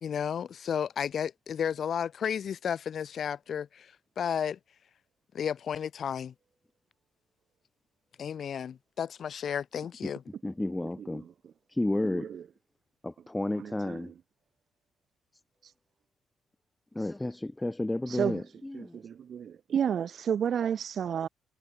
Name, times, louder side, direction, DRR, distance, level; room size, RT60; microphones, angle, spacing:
voice 1, 0.0-4.6 5.3-6.3 8.2-10.2, left 8 dB, 55° left, 2.4 m, -33 dB
voice 2, 10.4-11.2 11.7-12.3 13.0-14.1 16.9-19.0, left 1 dB, 10° left, 0.8 m, -32 dB
voice 3, 12.1-12.4 13.5-14.1 18.1-18.4 18.7-21.3, right 8 dB, 55° right, 3.2 m, -31 dB
cardioid pair, 90°, 0 cm